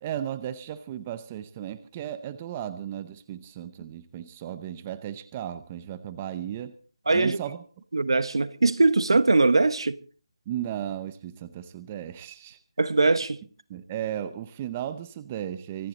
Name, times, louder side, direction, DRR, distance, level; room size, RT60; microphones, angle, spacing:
voice 1, 0.0-6.7 7.1-7.6 10.5-12.6 13.7-15.9, right 11 dB, 15° right, 0.6 m, -35 dB
voice 2, 7.1-7.4 7.9-10.0 12.8-13.4, right 3 dB, 75° right, 1.2 m, -21 dB
25.0 x 11.0 x 4.0 m
figure-of-eight pair, 170°, 3 cm